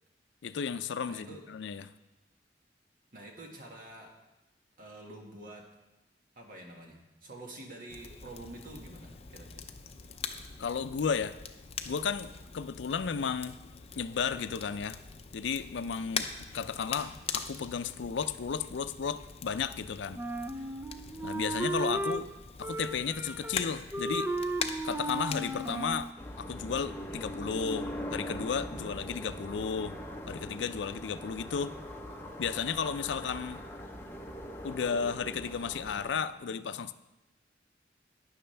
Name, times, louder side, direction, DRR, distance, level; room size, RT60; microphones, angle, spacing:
voice 1, 0.4-1.9 10.6-11.4 11.9-13.6 14.0-15.0 15.3-16.3 16.5-20.2 21.2-22.3 22.6-24.3 24.8-26.1 26.4-30.0 30.3-31.7 32.4-33.7 34.6-36.9, left 6 dB, 85° left, 12 dB, 0.5 m, -33 dB
voice 2, 1.1-1.4 3.1-4.1 4.8-5.6 6.4-9.8 21.9-22.1 33.1-33.6, right 1 dB, 50° right, 0 dB, 1.8 m, -48 dB
Crackle, 7.9-26.1, left 6 dB, 35° left, 0.6 m, -43 dB
Wind instrument woodwind instrument, 20.1-22.2 22.6-23.7 23.9-26.1, right 1 dB, 10° right, 0.4 m, -35 dB
sound 1, 26.2-36.1, equal, 15° left, 0.9 m, -41 dB
12.0 x 9.5 x 3.4 m, 1.0 s
head